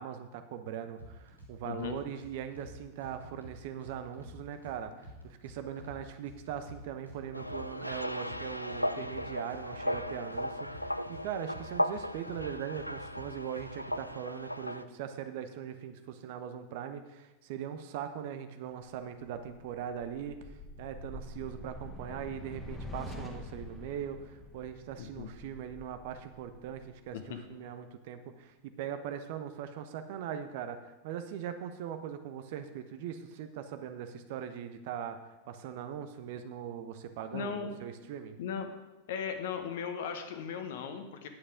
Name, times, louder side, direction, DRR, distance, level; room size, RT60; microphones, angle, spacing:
voice 1, 0.0-20.4 20.8-35.2 35.5-38.4, right 9 dB, 50° right, 9 dB, 0.9 m, -40 dB
sound 1, 1.0-1.5 1.8-2.7 3.0-4.7 5.0-6.0 6.3-8.0 8.3-9.2 9.5-11.2 11.5-12.4 12.7-14.0, equal, 90° right, 2.5 m, -50 dB
voice 2, 1.6-2.0 25.0-25.3 27.1-27.4 37.3-37.7 38.4-38.7 39.1-41.3, left 7 dB, 55° left, 7 dB, 1.2 m, -37 dB
sound 2, 7.3-14.8, equal, 90° left, 0.4 m, -36 dB
sound 3, 20.0-27.5, left 1 dB, 10° left, 1.4 m, -46 dB
9.7 x 8.7 x 5.1 m, 1.0 s
figure-of-eight pair, 90°, 0 cm